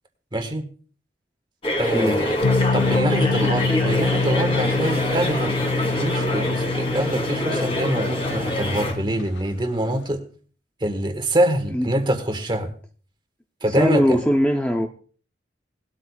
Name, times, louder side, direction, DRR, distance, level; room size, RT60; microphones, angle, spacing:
voice 1, 0.3-0.7 1.8-2.4 2.7-10.2 10.8-12.7 13.6-14.2, right 1 dB, 25° right, 1.5 m, -25 dB
sound 1, 1.6-8.9, equal, 30° left, 3.2 m, -25 dB
voice 2, 1.9-2.3 11.7-11.9 13.7-14.9, equal, 5° left, 0.6 m, -20 dB
sound 2, 2.4-9.3, left 4 dB, 70° left, 0.5 m, -26 dB
19.0 x 12.5 x 2.4 m
head